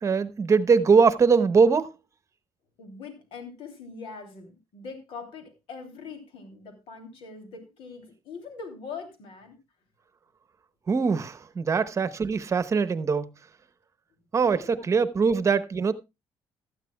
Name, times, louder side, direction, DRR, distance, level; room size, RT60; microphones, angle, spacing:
voice 1, 0.0-1.9 10.9-13.3 14.3-15.9, right 5 dB, 35° right, 0.9 m, -22 dB
voice 2, 2.8-9.6 14.4-14.9, left 5 dB, 75° left, 3.0 m, -42 dB
16.0 x 12.5 x 2.3 m
cardioid pair, 130°, 9 cm